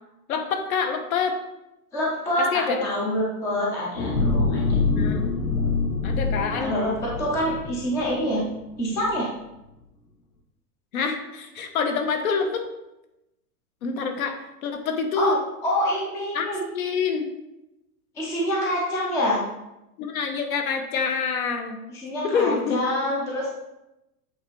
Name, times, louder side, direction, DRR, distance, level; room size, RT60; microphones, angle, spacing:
voice 1, 0.3-1.4 2.4-2.8 4.9-5.3 6.0-6.7 10.9-12.6 13.8-14.4 14.6-15.4 16.3-17.3 20.0-21.8 22.2-22.8, left 5 dB, 65° left, 5 dB, 1.2 m, -26 dB
voice 2, 1.9-4.8 6.6-8.4 8.8-9.3 15.1-15.4 15.6-16.6 18.1-19.4 21.9-23.6, left 1 dB, 5° left, -4 dB, 0.5 m, -26 dB
sound 1, 4.0-8.5 8.9-9.1, left 3 dB, 80° left, 1.9 m, -25 dB
8.3 x 3.5 x 4.6 m, 0.93 s
supercardioid pair, 160°, 46 cm